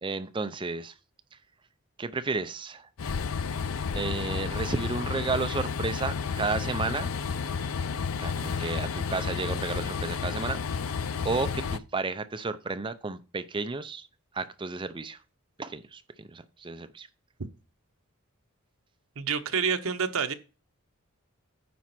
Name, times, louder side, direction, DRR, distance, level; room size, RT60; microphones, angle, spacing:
voice 1, 0.0-0.9 2.0-2.9 3.9-7.1 8.2-10.6 11.2-14.1 14.3-15.2 15.6-17.1, right 3 dB, 20° right, 0.5 m, -32 dB
Train, 3.0-11.8, left 5 dB, 70° left, 0.5 m, -31 dB
voice 2, 19.2-20.3, right 6 dB, 75° right, 1.0 m, -28 dB
9.5 x 4.2 x 5.9 m
head